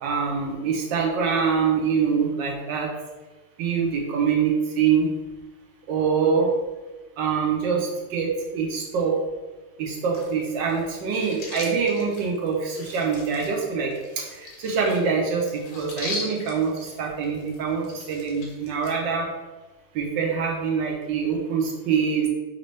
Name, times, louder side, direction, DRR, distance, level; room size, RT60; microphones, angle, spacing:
voice 1, 0.0-2.9 3.6-5.1 5.9-6.5 7.2-9.1 9.8-19.3 19.9-22.3, right 6 dB, 70° right, -1 dB, 1.3 m, -24 dB
sound 1, 10.1-18.9, left 2 dB, 80° left, 1.7 m, -40 dB
5.2 x 2.7 x 3.2 m, 1.2 s
omnidirectional pair, 2.2 m